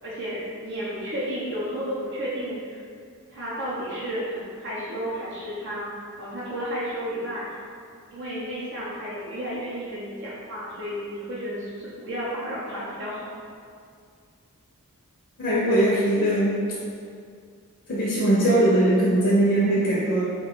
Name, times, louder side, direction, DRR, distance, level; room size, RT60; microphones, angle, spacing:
voice 1, 0.0-2.8 3.3-5.8 6.2-7.6 8.1-13.3, equal, 50° right, -8 dB, 0.5 m, -32 dB
voice 2, 15.4-16.6 17.9-20.2, right 1 dB, 45° left, -9 dB, 0.5 m, -20 dB
2.4 x 2.2 x 3.5 m, 2.2 s
head